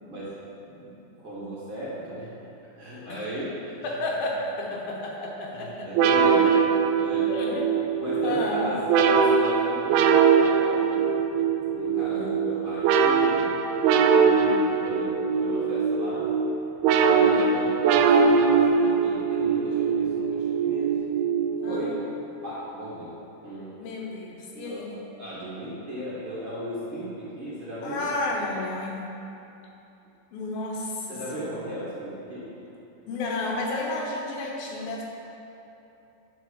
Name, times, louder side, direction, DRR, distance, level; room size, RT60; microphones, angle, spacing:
voice 1, 1.2-2.3 2.8-3.9 5.5-6.6 7.0-7.3 8.0-11.3 11.7-13.6 13.9-16.3 16.9-20.9 21.7-21.9 22.4-23.1 23.4-23.7 24.5-24.9 25.2-28.1 31.1-32.5, right 1 dB, 40° right, -9 dB, 2.3 m, -36 dB
voice 2, 3.8-5.9 6.5-6.6 7.3-7.7 8.2-8.7 12.1-12.5 17.2-17.5 21.6-21.9 23.8-25.0 27.8-29.0 30.3-31.6 33.1-35.0, left 2 dB, 75° left, -1 dB, 2.9 m, -32 dB
sound 1, 6.0-22.2, right 6 dB, 90° right, 2.6 m, -22 dB
9.6 x 6.4 x 6.4 m, 2.9 s
omnidirectional pair, 4.3 m